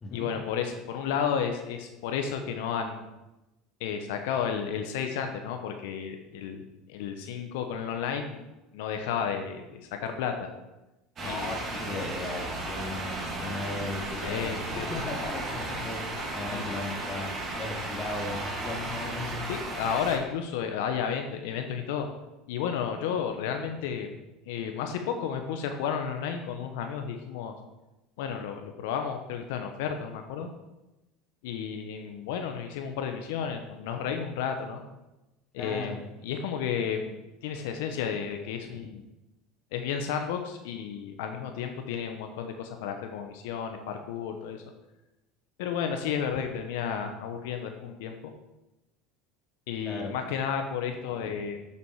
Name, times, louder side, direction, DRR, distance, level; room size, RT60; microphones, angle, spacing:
voice 1, 0.1-3.0 3.8-8.4 8.7-10.5 11.2-11.5 14.2-14.9 16.5-16.8 19.5-22.1 22.5-24.1 24.5-27.5 28.2-30.5 31.4-34.8 35.5-37.2 37.4-39.0 39.7-44.6 45.6-48.1 49.7-51.7, left 7 dB, 80° left, 5 dB, 0.8 m, -32 dB
voice 2, 11.2-16.0 16.3-19.4 35.6-36.0 38.6-38.9 49.8-50.1 51.1-51.4, left 2 dB, 25° left, -1 dB, 2.4 m, -37 dB
sound 1, 11.2-20.2, right 1 dB, 35° right, 2.6 m, -35 dB
7.1 x 6.9 x 4.7 m, 0.99 s
supercardioid pair, 110°, 0 cm